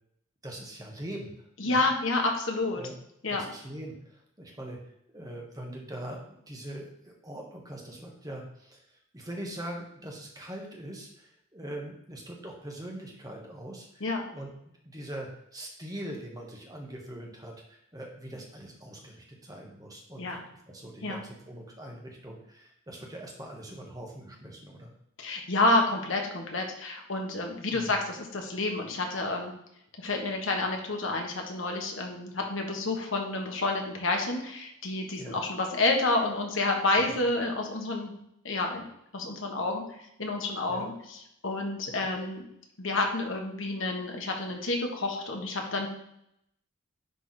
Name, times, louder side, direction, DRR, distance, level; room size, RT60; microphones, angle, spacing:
voice 1, 0.4-1.3 1.6-1.8 2.8-2.9 3.3-4.8 5.1-14.5 14.8-20.2 20.7-24.9 27.7-27.9 35.2-35.4 37.1-37.2 40.7-40.9, right 1 dB, 15° right, 0 dB, 1.3 m, -42 dB
voice 2, 1.6-2.8 3.2-3.4 14.0-14.3 20.2-20.4 21.0-21.2 25.2-29.5 30.0-38.1 38.4-38.8 39.1-39.8 40.2-40.9 41.4-42.4 42.8-45.9, left 2 dB, 70° left, 2 dB, 1.5 m, -29 dB
10.5 x 3.5 x 4.2 m, 0.76 s
head